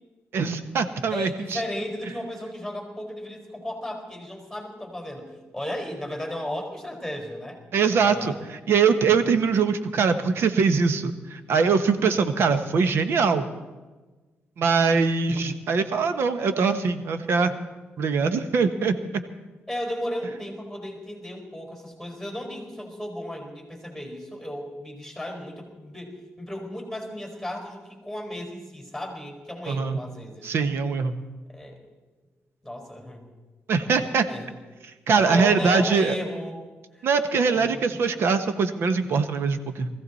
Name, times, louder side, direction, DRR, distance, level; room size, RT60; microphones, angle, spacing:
voice 1, 0.3-1.6 7.7-8.3 8.7-13.5 14.6-17.6 18.0-18.9 29.7-30.0 30.4-31.1 33.7-34.2 35.1-36.1 37.0-39.9, right 5 dB, 70° right, 10 dB, 1.1 m, -22 dB
voice 2, 1.1-7.6 7.9-8.5 19.7-30.7 31.5-31.8 32.6-33.2 34.0-34.5 35.1-36.6 36.9-37.1 37.5-37.8, left 1 dB, 5° right, 1 dB, 4.5 m, -35 dB
21.0 x 15.0 x 4.2 m, 1.3 s
cardioid pair, 110°, 4 cm